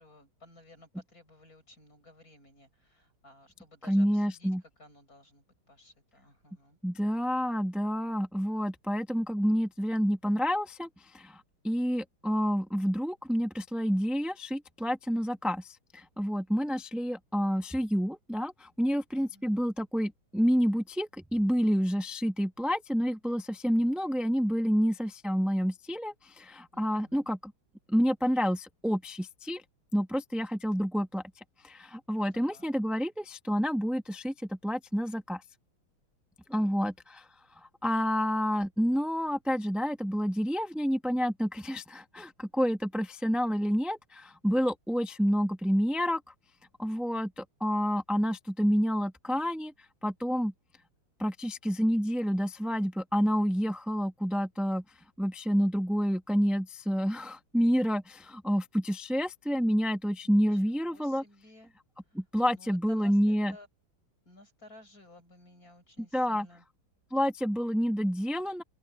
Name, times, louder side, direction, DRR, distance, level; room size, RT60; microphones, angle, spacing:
voice 1, 0.0-4.5 4.8-5.4 5.7-6.8 19.1-19.4 26.7-27.3 32.3-32.6 36.5-36.9 60.2-60.4 60.9-61.7 62.5-63.7 64.3-66.6, left 1 dB, 40° left, 8.5 m, -56 dB
voice 2, 3.8-4.6 6.8-27.5 27.9-29.6 29.9-31.2 31.6-35.4 36.5-46.3 46.8-49.7 50.0-50.5 51.2-54.8 55.2-61.2 62.1-63.6 66.0-66.5 67.1-68.6, equal, ahead, 0.9 m, -29 dB
omnidirectional pair, 2.4 m